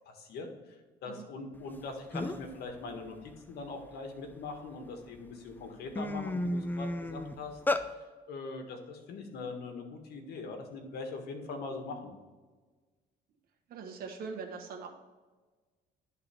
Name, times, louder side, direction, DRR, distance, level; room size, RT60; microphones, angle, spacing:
voice 1, 0.0-12.2, left 3 dB, 70° left, 4 dB, 1.5 m, -42 dB
sound 1, 1.8-1.9 2.1-2.6 3.0-4.6 5.2-5.3 5.6-7.9, left 2 dB, 10° left, 0.4 m, -33 dB
voice 2, 13.7-14.9, right 5 dB, 65° right, 2 dB, 1.4 m, -41 dB
11.0 x 4.0 x 4.4 m, 1.3 s
cardioid pair, 110°, 17 cm